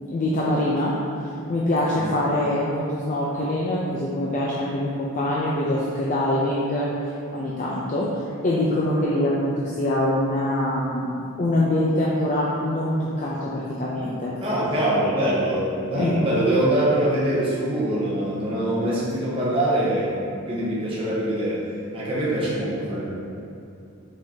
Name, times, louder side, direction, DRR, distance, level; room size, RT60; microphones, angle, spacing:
voice 1, 0.1-1.0 1.5-11.1 11.4-14.3 15.9-16.2, left 1 dB, 35° left, -5 dB, 0.4 m, -24 dB
voice 2, 14.4-20.2 20.5-23.1, right 1 dB, 25° right, -8 dB, 0.6 m, -24 dB
5.1 x 3.7 x 2.7 m, 2.6 s
head